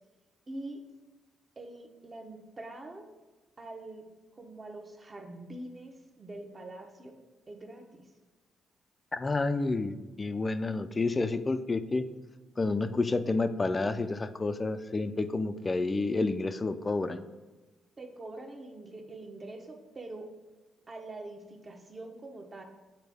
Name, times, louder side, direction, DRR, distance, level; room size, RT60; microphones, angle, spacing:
voice 1, 0.5-0.8 1.6-3.1 3.6-4.1 4.3-7.1 7.5-8.1 18.0-20.3 20.9-22.6, right 2 dB, 30° right, 4 dB, 1.0 m, -44 dB
voice 2, 9.1-12.1 12.6-17.2, left 3 dB, 25° left, 11 dB, 0.4 m, -30 dB
7.9 x 4.1 x 3.5 m, 1.2 s
cardioid pair, 90°, 0 cm